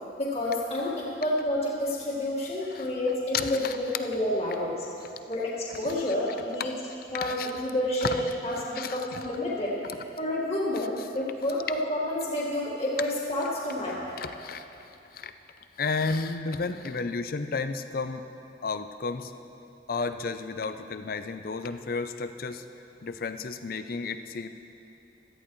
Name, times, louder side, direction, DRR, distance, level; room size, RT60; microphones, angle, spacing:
voice 1, 0.2-4.9 5.3-6.7 7.1-8.1 8.4-9.8 10.2-14.1, left 1 dB, 35° left, -6 dB, 1.9 m, -29 dB
voice 2, 3.3-3.8 5.8-5.9 6.6-6.7 7.2-7.5 8.0-8.1 8.8-9.2 11.0-11.1 14.2-14.6 15.1-15.3 15.8-18.2 18.6-19.3 19.9-22.6 23.0-24.5, left 4 dB, 55° left, 10 dB, 0.5 m, -32 dB
16.5 x 13.0 x 3.1 m, 2.8 s
head